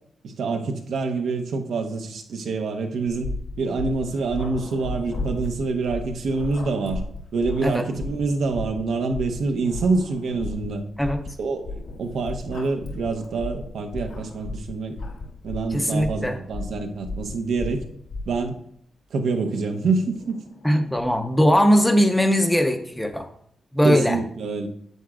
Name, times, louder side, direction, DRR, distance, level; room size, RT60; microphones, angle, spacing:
voice 1, 0.2-7.0 7.3-10.8 11.4-15.0 15.4-17.8 18.3-18.6 19.1-20.4 23.8-24.7, right 4 dB, 75° right, 4 dB, 0.9 m, -26 dB
sound 1, 3.1-18.5, left 3 dB, 65° left, 1.5 m, -35 dB
Growling, 3.9-8.5 9.2-9.3 9.6-10.7 11.8-14.6 14.9-15.5 16.3-18.2 19.3-21.8, left 2 dB, 80° left, 1.4 m, -41 dB
voice 2, 15.7-16.4 20.6-23.3 23.7-24.2, equal, 5° left, 6 dB, 0.6 m, -20 dB
9.2 x 7.7 x 2.5 m, 0.67 s
wide cardioid pair, 165°, 0 cm